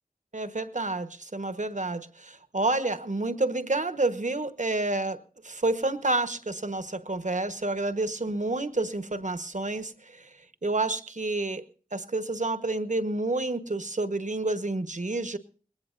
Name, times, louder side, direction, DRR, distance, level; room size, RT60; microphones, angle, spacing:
voice 1, 0.3-10.3 10.6-11.6 11.9-15.4, right 2 dB, 60° right, 1.2 m, -29 dB
21.0 x 18.0 x 2.5 m
wide cardioid pair, 45°, 15 cm